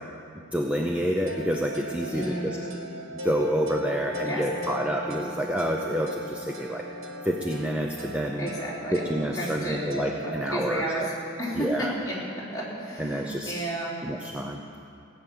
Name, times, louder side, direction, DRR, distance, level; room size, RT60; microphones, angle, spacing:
voice 1, 0.5-2.6 3.2-6.8 7.2-8.5 8.9-10.8 11.6-11.9 13.0-13.5 14.0-14.6, equal, 5° right, 1 dB, 0.6 m, -28 dB
sound 1, 1.3-10.9, equal, 85° right, 1.4 m, -38 dB
voice 2, 2.1-2.7 4.2-4.4 8.4-9.0 9.3-9.8 10.2-12.2 12.5-13.9, right 1 dB, 20° left, -8 dB, 3.7 m, -32 dB
16.5 x 9.1 x 7.0 m, 2.5 s
head